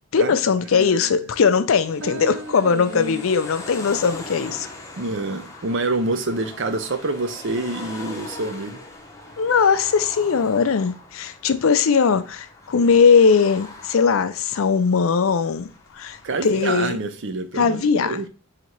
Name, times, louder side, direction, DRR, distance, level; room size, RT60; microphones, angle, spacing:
voice 1, 0.1-4.7 9.4-15.7 15.9-17.0 17.6-18.2, left 5 dB, 75° left, 0.5 m, -19 dB
sound 1, 1.7-16.7, left 2 dB, 15° left, 0.7 m, -41 dB
voice 2, 2.0-3.2 5.0-8.8 16.2-18.3, right 2 dB, 60° right, 0.6 m, -27 dB
4.1 x 2.9 x 4.5 m
head